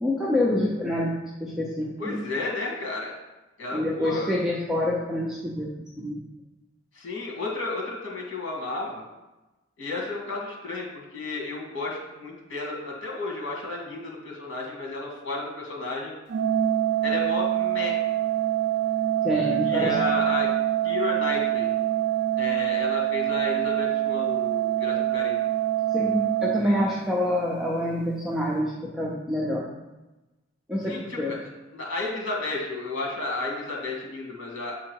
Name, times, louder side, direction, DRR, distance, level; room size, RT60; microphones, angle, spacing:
voice 1, 0.0-1.1 1.4-2.2 3.7-5.7 6.0-6.2 19.2-20.0 25.9-29.6 30.7-31.4, left 1 dB, ahead, -5 dB, 0.6 m, -26 dB
voice 2, 2.0-3.1 3.6-4.4 6.9-9.1 9.8-16.1 17.0-18.0 19.6-20.5 20.8-21.7 22.4-25.4 30.9-31.4 31.7-34.7, left 3 dB, 85° left, -2 dB, 2.0 m, -32 dB
Organ, 16.3-27.3, right 12 dB, 60° right, 0.3 m, -25 dB
7.4 x 3.8 x 4.6 m, 1.1 s
head